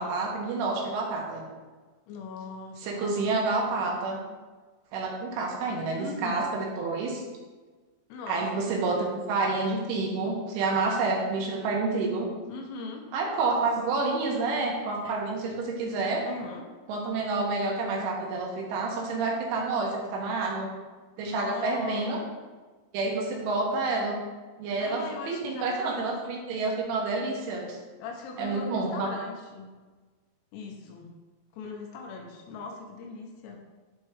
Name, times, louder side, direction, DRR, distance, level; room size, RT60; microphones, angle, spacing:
voice 1, 0.0-1.4 2.8-4.2 4.9-7.2 8.3-12.3 13.1-16.2 16.9-20.7 21.2-22.2 22.9-24.2 24.6-27.8 28.4-29.1, right 3 dB, 75° right, -2 dB, 3.3 m, -29 dB
voice 2, 2.1-3.3 6.0-6.5 8.1-9.1 12.5-13.1 15.0-15.1 15.5-15.6 16.2-16.7 21.2-22.2 24.8-26.2 28.0-29.7 30.5-31.1 31.5-33.6, left 4 dB, 80° left, 2 dB, 3.2 m, -39 dB
12.0 x 4.2 x 3.3 m, 1.3 s
omnidirectional pair, 6.0 m